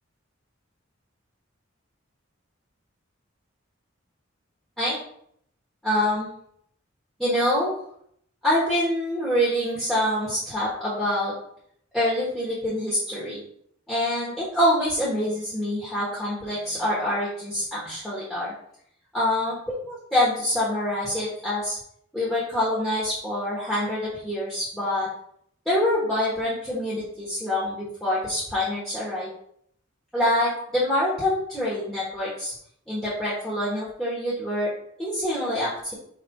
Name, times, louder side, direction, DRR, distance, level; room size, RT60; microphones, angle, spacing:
voice 1, 5.8-6.3 7.2-7.8 8.4-11.3 11.9-13.4 13.9-18.5 19.1-21.8 22.1-25.1 25.6-29.3 30.1-32.5 32.9-34.7 35.0-35.9, left 1 dB, ahead, -10 dB, 1.2 m, -25 dB
5.0 x 4.3 x 2.3 m, 0.67 s
head